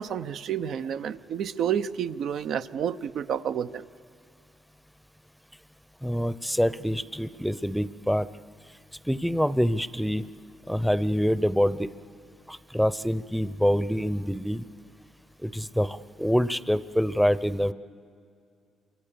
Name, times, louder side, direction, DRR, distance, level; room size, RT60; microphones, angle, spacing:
voice 1, 0.0-3.9, right 8 dB, 70° right, 10 dB, 0.6 m, -30 dB
voice 2, 6.0-8.3 9.1-10.3 10.7-11.9 12.5-14.6 15.4-17.7, equal, ahead, 16 dB, 0.7 m, -26 dB
27.0 x 24.5 x 6.9 m, 2.4 s
cardioid pair, 90°, 0 cm